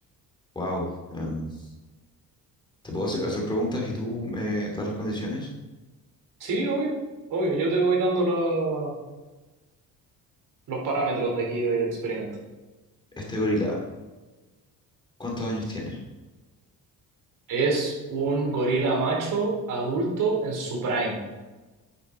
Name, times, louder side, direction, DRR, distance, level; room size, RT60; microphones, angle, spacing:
voice 1, 0.5-1.7 2.8-5.5 13.2-13.8 15.2-16.0, left 1 dB, 15° left, -2 dB, 2.6 m, -29 dB
voice 2, 6.4-6.9 7.3-8.9 10.7-12.3 17.5-21.2, right 3 dB, 60° right, -1 dB, 4.3 m, -25 dB
13.0 x 9.9 x 4.3 m, 1.2 s
cardioid pair, 170°, 36 cm